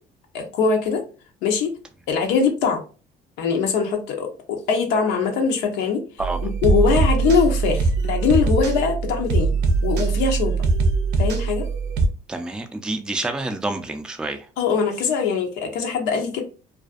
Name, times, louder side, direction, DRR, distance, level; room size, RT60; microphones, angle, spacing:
voice 1, 0.3-1.0 1.4-1.7 2.1-2.8 3.4-6.0 6.4-9.5 9.8-10.6 11.2-11.7 14.6-16.4, left 5 dB, 90° left, 0.6 m, -22 dB
sound 1, 6.2-12.1, right 4 dB, 90° right, 0.5 m, -21 dB
voice 2, 12.3-14.5, right 2 dB, 5° right, 0.3 m, -28 dB
2.4 x 2.4 x 2.3 m
cardioid pair, 110°, 17 cm